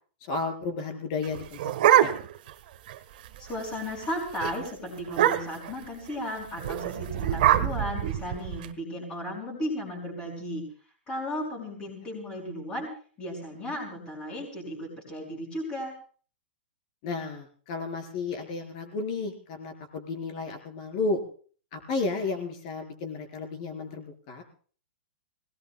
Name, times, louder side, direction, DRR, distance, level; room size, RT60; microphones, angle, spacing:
voice 1, 0.3-1.6 2.0-2.1 17.0-21.2 21.7-24.4, left 3 dB, 40° left, 5 dB, 4.2 m, -32 dB
sound 1, 1.2-2.5 2.9-3.0 3.2-3.6 3.9-4.1 4.4-4.5 5.1-5.7 6.6-8.7, right 12 dB, 50° right, 1.3 m, -24 dB
voice 2, 3.4-10.6 11.1-12.9 13.2-15.9, equal, 15° left, -6 dB, 5.3 m, -35 dB
27.0 x 19.0 x 2.3 m, 0.43 s
hypercardioid pair, 165°, 6 cm